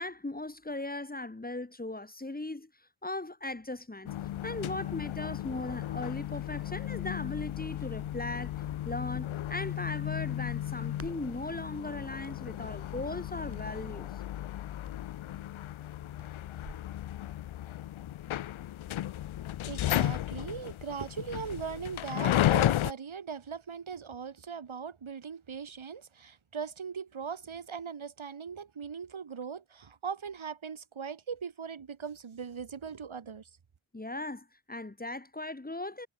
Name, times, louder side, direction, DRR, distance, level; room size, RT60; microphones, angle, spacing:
voice 1, 0.0-2.7 3.0-4.1 4.4-8.6 8.8-14.1 33.9-36.1, left 2 dB, 20° left, 2.8 m, -38 dB
sound 1, 4.1-22.9, left 13 dB, 80° left, 0.6 m, -34 dB
Crackle, 7.7-16.9, right 3 dB, 30° right, 5.7 m, -56 dB
voice 2, 19.6-33.5, right 6 dB, 75° right, 7.8 m, -40 dB
wide cardioid pair, 140°, 47 cm